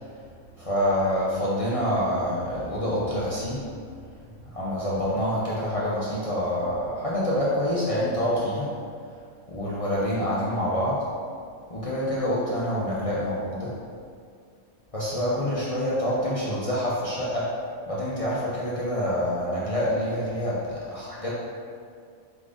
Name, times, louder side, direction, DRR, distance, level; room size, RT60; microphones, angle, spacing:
voice 1, 0.6-3.7 4.4-8.7 9.5-11.0 11.7-13.7 14.9-17.5 17.9-21.3, equal, 55° left, -8 dB, 0.3 m, -26 dB
5.0 x 3.5 x 2.5 m, 2.2 s
omnidirectional pair, 1.5 m